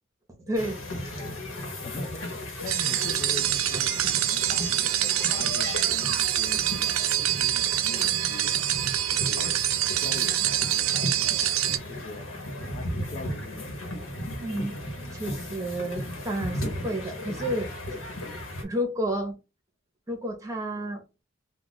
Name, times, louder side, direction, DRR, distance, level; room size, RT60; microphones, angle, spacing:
sound 1, 0.5-18.6, left 1 dB, 80° left, 1.2 m, -36 dB
voice 1, 0.5-0.8 14.4-14.8 15.1-17.7 18.6-19.4 20.1-21.0, right 1 dB, 15° right, 0.9 m, -30 dB
voice 2, 1.1-8.6 9.1-9.6 10.0-11.2 11.8-12.3 12.6-14.0, left 3 dB, 35° left, 0.4 m, -42 dB
sound 2, 2.7-11.8, right 13 dB, 85° right, 0.4 m, -26 dB
2.4 x 2.3 x 4.0 m
head